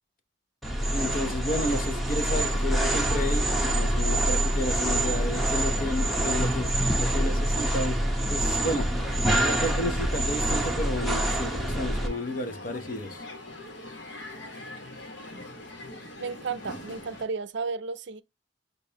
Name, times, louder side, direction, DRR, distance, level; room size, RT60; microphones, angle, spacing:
sound 1, 0.6-12.1, right 1 dB, ahead, 0.9 m, -26 dB
voice 1, 0.9-8.0 8.3-8.9 9.4-13.2, left 1 dB, 45° left, 0.8 m, -32 dB
Crowd, 8.9-17.2, left 1 dB, 65° left, 1.3 m, -42 dB
voice 2, 16.2-18.2, right 5 dB, 65° right, 0.5 m, -33 dB
6.8 x 2.5 x 2.8 m
head